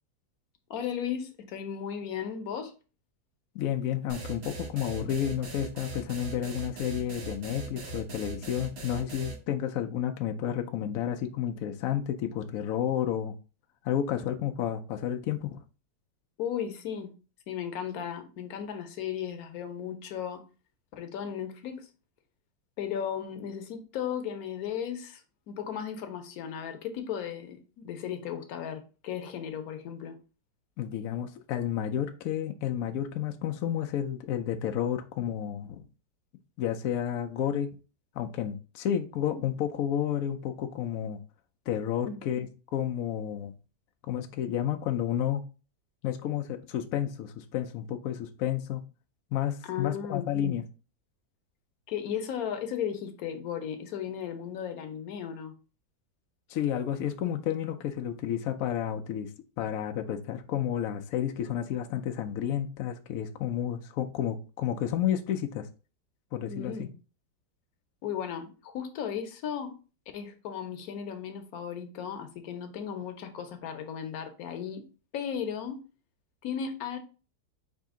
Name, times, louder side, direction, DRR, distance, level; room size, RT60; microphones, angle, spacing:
voice 1, 0.7-2.7 16.4-17.1 17.5-20.4 20.9-21.9 22.8-30.2 42.0-42.2 49.6-50.3 51.9-55.5 66.5-66.9 68.0-69.8 70.1-74.9 75.1-75.9 76.4-77.0, left 8 dB, 60° left, 1.0 m, -35 dB
voice 2, 3.5-13.3 13.8-15.6 30.8-35.8 36.6-37.8 38.1-41.2 41.7-43.5 44.0-45.4 46.0-48.8 49.3-50.6 56.5-59.3 59.6-65.7 66.3-66.9, left 10 dB, 80° left, 0.7 m, -31 dB
sound 1, 4.1-9.4, right 4 dB, 60° right, 1.7 m, -40 dB
5.1 x 2.8 x 3.6 m
omnidirectional pair, 2.0 m